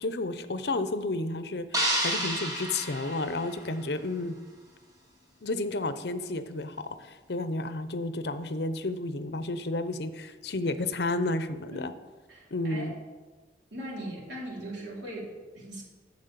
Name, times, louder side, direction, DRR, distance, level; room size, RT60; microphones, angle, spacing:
voice 1, 0.0-4.4 5.4-11.9 12.5-12.9, left 2 dB, 70° left, 11 dB, 0.7 m, -31 dB
sound 1, 1.7-4.0, equal, 20° right, 1.5 m, -30 dB
voice 2, 12.3-12.9 13.7-15.8, right 1 dB, 90° right, -3 dB, 3.5 m, -39 dB
9.5 x 7.4 x 6.8 m, 1.3 s
head